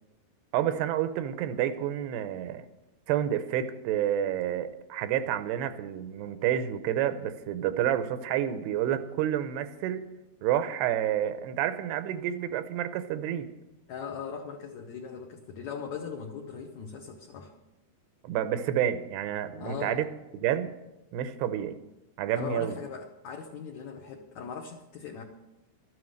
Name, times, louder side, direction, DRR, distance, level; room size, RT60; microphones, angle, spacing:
voice 1, 0.5-2.6 3.1-10.1 10.4-13.5 18.2-20.1 20.4-20.7 21.1-21.7 22.2-22.8, right 10 dB, 90° right, 11 dB, 2.9 m, -29 dB
voice 2, 13.9-17.5 19.6-20.0 22.3-25.2, left 6 dB, 75° left, 2 dB, 1.7 m, -39 dB
13.0 x 9.5 x 6.5 m, 0.96 s
omnidirectional pair, 4.6 m